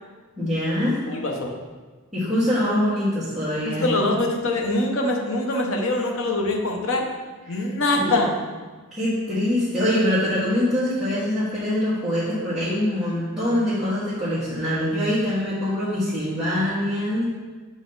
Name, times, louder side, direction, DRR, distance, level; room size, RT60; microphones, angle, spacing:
voice 1, 0.4-1.0 2.1-3.9 7.5-7.6 8.0-8.2 8.9-17.2, left 1 dB, ahead, -14 dB, 1.5 m, -24 dB
voice 2, 1.1-1.5 3.6-7.0 7.5-8.3, left 2 dB, 65° left, 1 dB, 0.9 m, -23 dB
7.2 x 4.1 x 4.0 m, 1.4 s
head